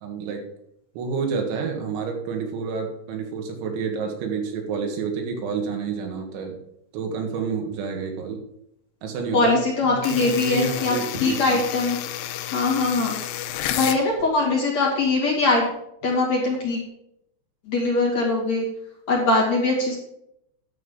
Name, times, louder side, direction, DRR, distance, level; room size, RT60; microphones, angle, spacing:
voice 1, 0.0-0.5 1.0-6.6 6.9-8.4 9.0-9.5 9.9-11.6, right 5 dB, 85° right, 2 dB, 4.2 m, -29 dB
voice 2, 9.3-12.0 12.5-13.2 13.8-15.6 16.0-16.8 17.7-18.6 19.1-20.0, left 3 dB, 45° left, -3 dB, 3.0 m, -22 dB
sound 1, 10.0-14.0, left 12 dB, 80° left, 2.6 m, -31 dB
11.0 x 7.3 x 5.5 m, 0.77 s
omnidirectional pair, 5.2 m